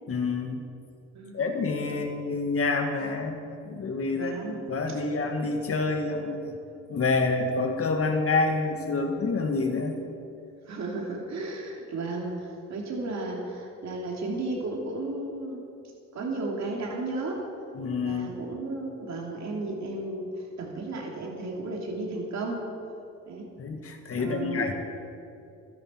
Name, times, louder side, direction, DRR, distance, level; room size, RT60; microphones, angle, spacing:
voice 1, 0.1-0.6 1.3-6.5 6.9-10.0 17.7-18.3 23.6-24.7, left 3 dB, 50° left, 4 dB, 1.9 m, -28 dB
voice 2, 4.1-4.6 4.9-5.0 10.7-15.7 16.1-17.5 18.0-22.7 23.3-23.5 24.2-24.7, right 2 dB, 60° right, 0 dB, 2.9 m, -34 dB
28.0 x 10.5 x 4.5 m, 2.7 s
cardioid pair, 90°, 30 cm